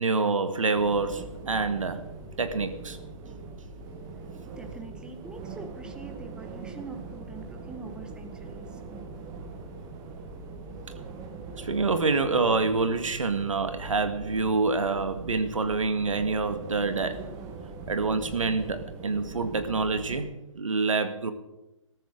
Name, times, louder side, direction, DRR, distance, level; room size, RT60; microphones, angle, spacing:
voice 1, 0.0-2.0 2.4-3.0 11.6-17.3 17.9-21.3, right 4 dB, 70° right, 1.9 m, -27 dB
sound 1, 0.8-20.2, right 4 dB, 20° right, 1.7 m, -42 dB
voice 2, 4.4-8.8, right 3 dB, 5° right, 1.4 m, -44 dB
21.0 x 13.5 x 3.9 m
figure-of-eight pair, 135°, 17 cm